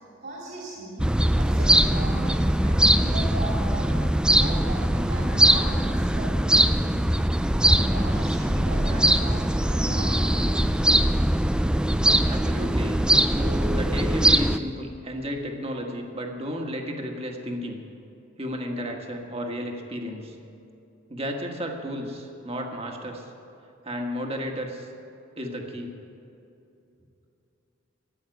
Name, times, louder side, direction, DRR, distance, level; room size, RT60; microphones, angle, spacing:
voice 1, 0.2-1.0 1.4-4.0 4.3-7.0 7.5-9.5 9.7-10.7, right 1 dB, 60° right, -4 dB, 2.5 m, -37 dB
sound 1, 1.0-14.6, right 1 dB, 5° right, 0.4 m, -21 dB
voice 2, 12.2-13.0 13.3-17.8 18.4-20.4 21.1-23.3 23.8-24.9 25.4-25.9, equal, 30° right, 2 dB, 1.5 m, -33 dB
14.0 x 8.6 x 9.2 m, 2.8 s
head